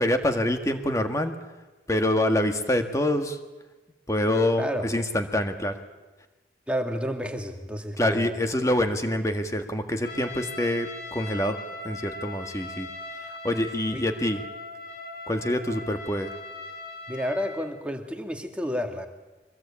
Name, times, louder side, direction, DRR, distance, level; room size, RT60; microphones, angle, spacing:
voice 1, 0.0-1.3 1.9-3.4 4.1-5.7 8.0-11.6 11.8-12.9 13.2-14.4 15.3-16.3, left 1 dB, 20° left, 6 dB, 1.7 m, -26 dB
voice 2, 4.6-4.9 6.7-8.4 13.9-14.0 17.1-19.1, equal, 5° right, 3 dB, 2.1 m, -30 dB
Trumpet, 10.0-17.7, left 2 dB, 55° left, 3.7 m, -39 dB
24.0 x 21.5 x 8.7 m, 1.2 s
head